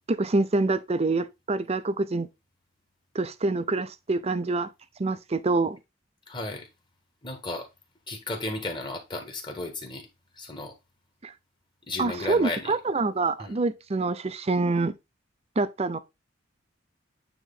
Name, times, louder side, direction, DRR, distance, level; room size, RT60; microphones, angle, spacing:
voice 1, 0.1-2.3 3.1-4.7 5.0-5.8 11.2-11.3 12.0-14.9 15.6-16.0, right 3 dB, 35° right, 0.5 m, -26 dB
voice 2, 6.3-6.7 7.2-7.7 8.1-10.1 10.3-10.7 11.9-12.8 13.4-13.5, left 2 dB, 25° left, 1.6 m, -34 dB
9.1 x 3.1 x 3.8 m
head